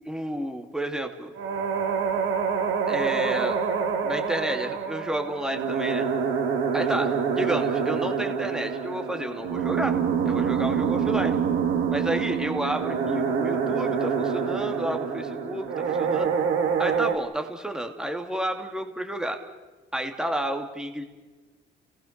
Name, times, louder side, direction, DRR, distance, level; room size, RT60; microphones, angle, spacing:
voice 1, 0.1-1.3 2.9-3.6 4.0-6.1 6.7-10.0 10.2-11.4 11.9-16.3 16.8-19.4 19.9-21.0, right 1 dB, 5° right, 4 dB, 2.5 m, -31 dB
sound 1, 1.4-17.2, right 6 dB, 85° right, 2.3 m, -26 dB
30.0 x 19.0 x 6.7 m, 1.3 s
cardioid pair, 90°, 20 cm